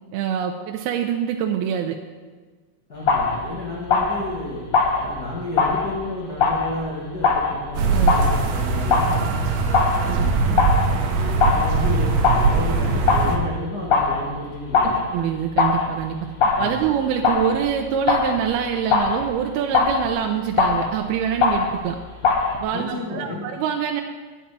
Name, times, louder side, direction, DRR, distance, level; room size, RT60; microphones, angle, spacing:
voice 1, 0.1-2.0 7.8-8.2 10.0-10.6 14.8-16.3 16.6-22.0 22.6-24.0, right 8 dB, 85° right, 3 dB, 2.5 m, -25 dB
voice 2, 2.9-4.6 4.9-9.3 10.0-15.0 16.5-16.9 22.7-23.5, left 1 dB, 40° left, -4 dB, 1.4 m, -32 dB
sound 1, 3.0-22.6, left 4 dB, 70° left, 1.3 m, -23 dB
sound 2, 7.7-13.4, right 4 dB, 65° right, 2.2 m, -21 dB
10.5 x 6.0 x 8.8 m, 1.4 s
omnidirectional pair, 4.7 m